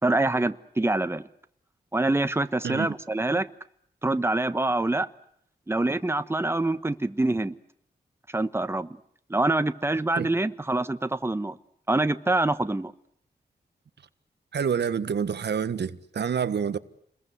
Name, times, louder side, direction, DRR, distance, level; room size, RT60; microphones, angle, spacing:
voice 1, 0.0-1.2 1.9-3.5 4.0-5.1 5.7-7.5 8.3-9.0 9.3-11.6 11.9-12.9, right 2 dB, 15° right, 1.2 m, -25 dB
voice 2, 14.5-16.8, right 7 dB, 75° right, 1.4 m, -27 dB
29.5 x 21.5 x 8.0 m
wide cardioid pair, 120°, 18 cm